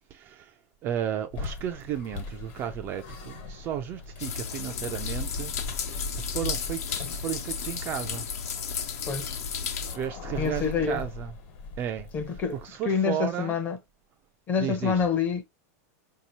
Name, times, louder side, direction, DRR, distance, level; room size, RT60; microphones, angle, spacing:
voice 1, 0.1-0.5 0.8-5.5 5.9-8.2 9.8-11.3 11.8-12.1 12.5-13.6 14.6-15.1, right 10 dB, 25° right, 0.3 m, -34 dB
sound 1, 1.3-12.7, left 3 dB, 45° left, 1.3 m, -39 dB
sound 2, 4.2-10.0, left 7 dB, 70° left, 1.0 m, -34 dB
voice 2, 9.1-9.4 10.3-11.0 12.1-12.6 12.8-13.8 14.5-15.4, left 6 dB, 20° left, 0.7 m, -27 dB
5.1 x 2.8 x 2.9 m
supercardioid pair, 170°, 9 cm